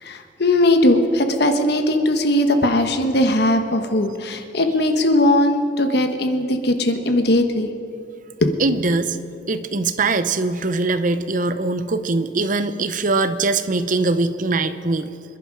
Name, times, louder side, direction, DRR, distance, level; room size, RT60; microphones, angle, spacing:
voice 1, 0.0-7.7 8.4-8.5, left 1 dB, 60° left, 6 dB, 1.3 m, -19 dB
voice 2, 8.6-9.2 9.5-15.1, right 3 dB, 45° right, 11 dB, 0.7 m, -22 dB
26.5 x 10.5 x 4.9 m, 2.7 s
head